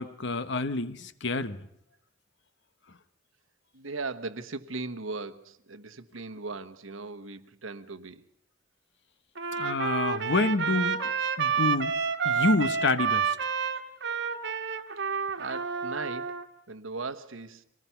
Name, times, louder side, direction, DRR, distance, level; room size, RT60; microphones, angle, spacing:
voice 1, 0.0-1.7 9.5-11.1 11.4-11.9 12.2-13.4, left 3 dB, 60° left, 1.1 m, -28 dB
voice 2, 3.7-8.2 15.4-16.4 16.7-17.6, right 3 dB, 85° right, 1.3 m, -38 dB
Trumpet, 9.4-16.4, right 6 dB, 60° right, 1.5 m, -29 dB
25.5 x 18.5 x 5.8 m
head